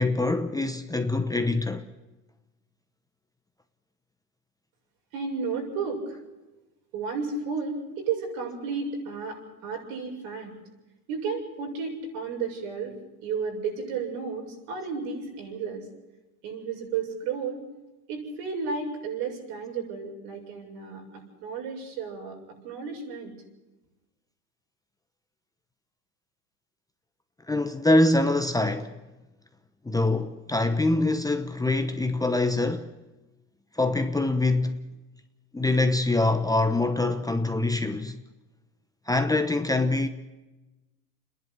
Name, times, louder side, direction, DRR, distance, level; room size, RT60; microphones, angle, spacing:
voice 1, 0.0-1.8 27.5-28.9 29.8-32.9 33.7-34.8 35.5-38.2 39.1-40.1, left 2 dB, 10° left, 0.9 m, -24 dB
voice 2, 5.1-6.2 6.9-10.5 11.1-15.9 16.4-17.6 18.1-23.3, right 5 dB, 70° right, 7.2 m, -33 dB
28.5 x 11.0 x 8.8 m
supercardioid pair, 110°, 45 cm